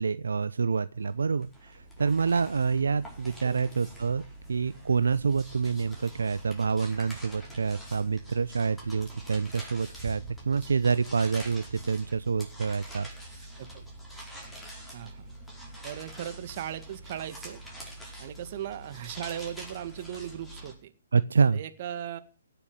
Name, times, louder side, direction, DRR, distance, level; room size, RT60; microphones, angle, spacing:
voice 1, 0.0-4.2 4.5-13.1 21.1-21.6, right 5 dB, 80° right, 14 dB, 0.7 m, -27 dB
sound 1, 1.0-20.7, right 1 dB, 5° left, 4.9 m, -45 dB
voice 2, 14.9-15.3 15.8-17.6 18.2-20.9 21.5-22.2, right 10 dB, 45° right, 12 dB, 1.8 m, -38 dB
17.0 x 7.0 x 9.8 m, 0.40 s
hypercardioid pair, 145°, 0 cm